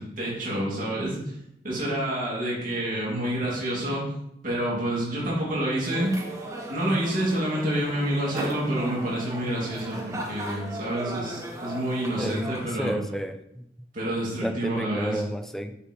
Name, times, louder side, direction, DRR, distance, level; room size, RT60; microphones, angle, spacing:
voice 1, 0.0-1.3 1.6-4.1 4.4-6.1 6.7-13.0 13.9-15.2, right 1 dB, 50° right, -5 dB, 2.1 m, -28 dB
sound 1, 5.8-12.7, right 1 dB, 20° right, 0.9 m, -37 dB
voice 2, 12.2-13.6 14.4-15.8, equal, ahead, 7 dB, 0.4 m, -31 dB
6.7 x 5.7 x 2.9 m, 0.80 s
head